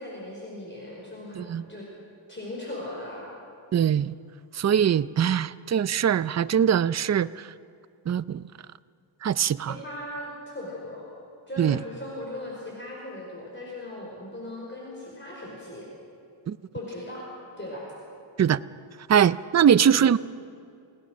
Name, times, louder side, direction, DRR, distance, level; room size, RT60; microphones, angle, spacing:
voice 1, 0.0-1.9 2.3-3.3 9.7-11.0 11.5-15.9 16.7-17.3 17.6-17.9 19.7-20.1, left 1 dB, 25° left, -3 dB, 5.1 m, -38 dB
voice 2, 3.7-4.1 4.5-7.5 8.1-8.4 9.2-9.7 11.6-11.8 16.5-16.6 18.4-18.6 19.1-20.2, right 8 dB, 35° right, 16 dB, 0.5 m, -22 dB
28.5 x 18.5 x 6.3 m, 2.4 s
wide cardioid pair, 95°, 49 cm